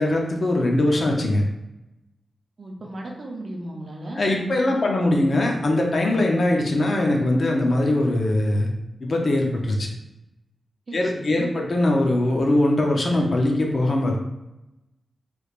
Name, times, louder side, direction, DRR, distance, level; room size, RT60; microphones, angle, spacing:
voice 1, 0.0-1.4 4.1-8.7 9.0-9.9 10.9-14.2, left 1 dB, 45° left, 0 dB, 0.5 m, -21 dB
voice 2, 2.6-5.2 10.9-11.5, right 1 dB, 40° right, -1 dB, 0.6 m, -36 dB
3.3 x 3.1 x 2.4 m, 0.93 s
wide cardioid pair, 165°, 0 cm